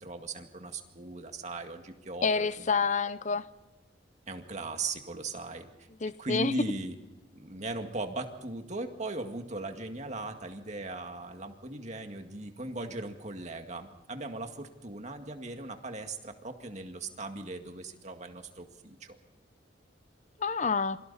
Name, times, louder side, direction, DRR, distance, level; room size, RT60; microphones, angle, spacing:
voice 1, 0.0-2.7 4.3-5.7 6.2-7.0 7.3-19.2, right 2 dB, 40° right, 2.0 m, -38 dB
voice 2, 2.2-3.5 6.0-6.5 20.4-21.0, left 5 dB, 45° left, 0.8 m, -28 dB
28.0 x 23.5 x 4.2 m
head